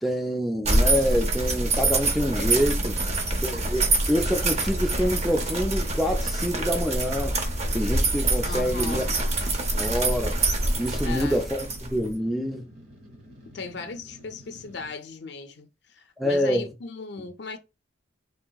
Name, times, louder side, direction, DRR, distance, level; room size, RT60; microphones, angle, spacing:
voice 1, 0.0-3.0 3.4-7.4 7.7-9.0 9.8-10.4 10.8-12.7 16.2-16.7, equal, ahead, 0.3 m, -26 dB
sound 1, 0.6-12.1, right 2 dB, 35° right, 0.6 m, -25 dB
voice 2, 8.4-9.2 11.0-11.4 13.5-17.6, left 4 dB, 60° left, 0.5 m, -37 dB
sound 2, 8.5-14.9, equal, 50° right, 1.2 m, -49 dB
3.4 x 2.8 x 2.3 m
head